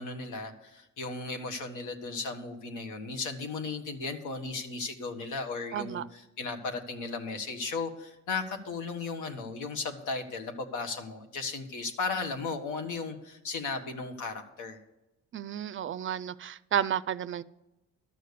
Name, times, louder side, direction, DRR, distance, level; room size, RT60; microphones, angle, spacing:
voice 1, 0.0-14.8, left 4 dB, 85° left, 6 dB, 1.3 m, -36 dB
voice 2, 5.7-6.1 15.3-17.4, right 10 dB, 45° right, 16 dB, 0.4 m, -32 dB
12.5 x 6.7 x 6.7 m, 0.96 s
cardioid pair, 90°, 30 cm